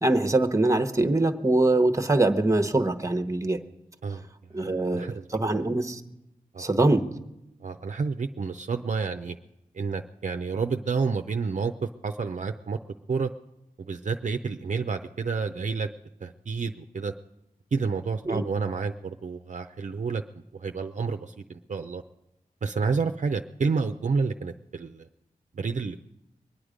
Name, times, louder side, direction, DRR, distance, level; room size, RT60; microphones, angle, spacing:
voice 1, 0.0-3.6 4.5-6.0 6.6-7.0 18.3-18.4, right 2 dB, 20° right, 9 dB, 0.9 m, -23 dB
voice 2, 4.5-5.2 6.5-6.6 7.6-9.4 9.7-12.8 13.1-13.3 13.8-15.9 16.2-17.1 17.7-20.2 20.5-22.0 22.6-25.1 25.5-26.0, right 5 dB, 55° right, 6 dB, 0.5 m, -29 dB
23.5 x 9.6 x 5.0 m, 0.90 s
wide cardioid pair, 95°, 15 cm